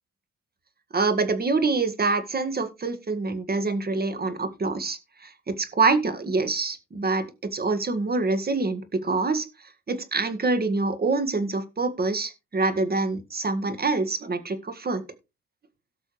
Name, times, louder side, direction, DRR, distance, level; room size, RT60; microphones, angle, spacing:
voice 1, 0.9-5.3 5.6-9.5 9.9-15.0, right 3 dB, 30° right, 10 dB, 1.8 m, -25 dB
17.5 x 6.2 x 3.2 m, 0.27 s
cardioid pair, 90°, 30 cm